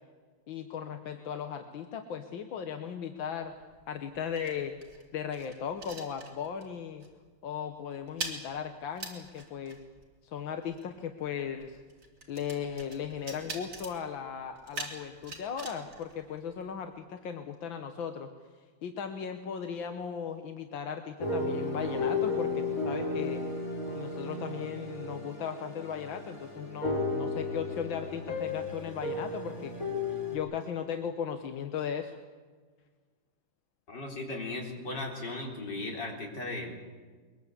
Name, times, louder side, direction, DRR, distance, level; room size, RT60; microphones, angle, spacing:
voice 1, 0.5-3.5 3.9-4.7 5.1-7.1 7.4-9.8 10.2-11.8 12.3-18.3 18.8-23.4 23.9-29.7 30.1-32.2, left 7 dB, 90° left, 6 dB, 1.9 m, -37 dB
sound 1, 3.4-6.8 7.0-7.3 7.5-16.9, right 3 dB, 60° right, 3.9 m, -45 dB
sound 2, 21.2-30.4, left 3 dB, 45° left, 5.0 m, -34 dB
voice 2, 33.9-36.7, left 2 dB, 65° left, 1 dB, 4.4 m, -37 dB
22.5 x 21.5 x 8.3 m, 1.5 s
omnidirectional pair, 2.0 m